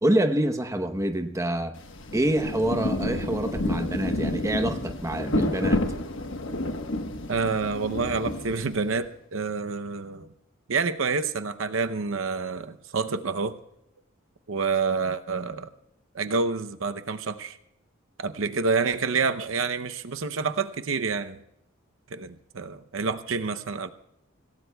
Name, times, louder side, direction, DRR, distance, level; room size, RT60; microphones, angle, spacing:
voice 1, 0.0-1.8 2.1-5.8, right 1 dB, 15° right, 6 dB, 0.9 m, -26 dB
Rain, 1.8-9.0, left 1 dB, 65° left, 1.3 m, -30 dB
voice 2, 7.3-10.3 10.7-13.6 14.5-15.7 16.1-17.6 18.2-21.4 22.1-23.9, right 4 dB, 70° right, 9 dB, 0.7 m, -28 dB
25.5 x 17.0 x 2.3 m, 0.81 s
head